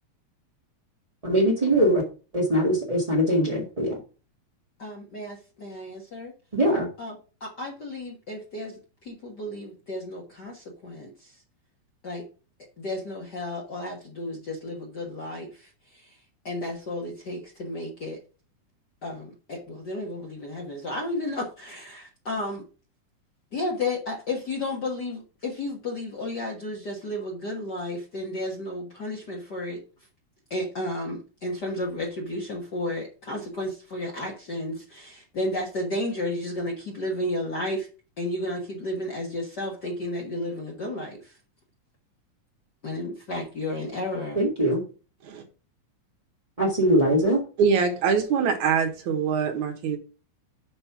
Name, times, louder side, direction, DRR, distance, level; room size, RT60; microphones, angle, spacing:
voice 1, 1.2-2.0 2.3-4.0 6.5-6.9 44.3-44.8 46.6-47.4, equal, 20° right, -4 dB, 1.1 m, -22 dB
voice 2, 4.8-6.3 7.0-11.4 12.0-12.2 12.8-16.2 16.4-18.2 19.0-22.6 23.5-29.8 30.5-37.9 38.2-41.4 42.8-44.4, left 1 dB, 45° left, -1 dB, 1.7 m, -33 dB
voice 3, 47.6-50.0, right 6 dB, 75° right, 5 dB, 2.8 m, -23 dB
7.0 x 5.4 x 5.8 m, 0.34 s
omnidirectional pair, 3.4 m